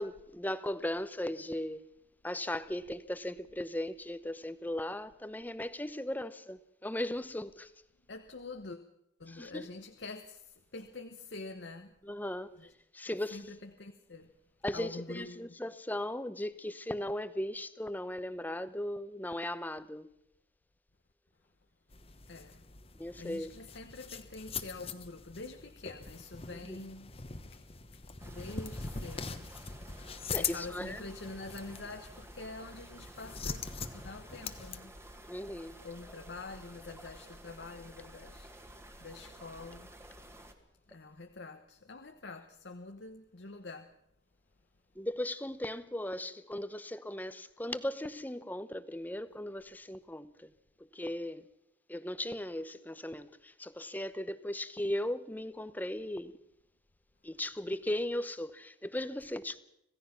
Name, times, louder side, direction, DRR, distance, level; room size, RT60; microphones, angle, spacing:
voice 1, 0.0-1.8 2.2-7.7 9.3-9.7 12.0-12.6 12.9-13.4 14.6-20.1 23.0-23.5 26.5-26.8 30.3-31.0 35.3-35.8 45.0-50.5 50.8-51.5 51.9-56.3 57.2-59.6, left 1 dB, 10° left, 0.8 m, -37 dB
voice 2, 8.1-8.8 9.2-12.0 12.6-12.7 13.1-14.3 14.7-15.6 22.3-22.6 23.1-27.1 27.5-27.6 27.9-28.0 28.3-29.5 30.3-34.9 35.8-39.9 40.9-43.9, left 3 dB, 65° left, 1.1 m, -46 dB
sound 1, 21.9-34.8, left 5 dB, 30° left, 1.2 m, -42 dB
sound 2, 28.2-40.5, right 1 dB, 15° right, 1.9 m, -52 dB
26.5 x 16.5 x 5.9 m
head